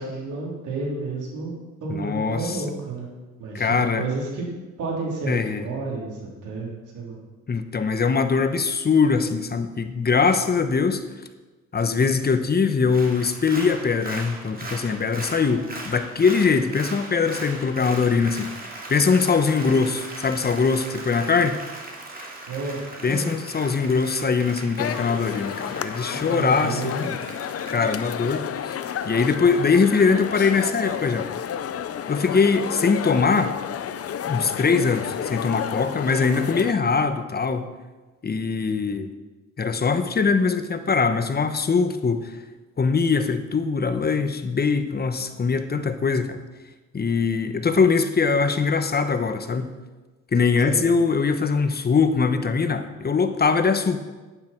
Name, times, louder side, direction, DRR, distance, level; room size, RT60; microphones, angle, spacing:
voice 1, 0.0-1.5 1.8-3.1 3.4-4.5 4.8-6.7 6.9-7.2 22.5-23.3 26.1-27.1 50.6-50.8, right 3 dB, 85° right, -3 dB, 3.9 m, -31 dB
voice 2, 1.9-2.6 3.5-4.0 5.3-5.6 7.5-11.0 11.7-21.6 23.0-27.2 27.7-28.8 29.0-31.3 32.1-33.5 34.3-37.7 38.2-39.1 39.6-42.4 42.8-46.4 46.9-49.7 50.3-54.0, left 5 dB, 30° left, 9 dB, 1.0 m, -22 dB
Applause, 12.8-29.4 29.8-29.9, right 2 dB, 30° right, 2.7 m, -39 dB
sound 1, 24.8-36.7, left 9 dB, 50° left, 0.7 m, -31 dB
11.5 x 10.0 x 4.6 m, 1.2 s
cardioid pair, 90°, 30 cm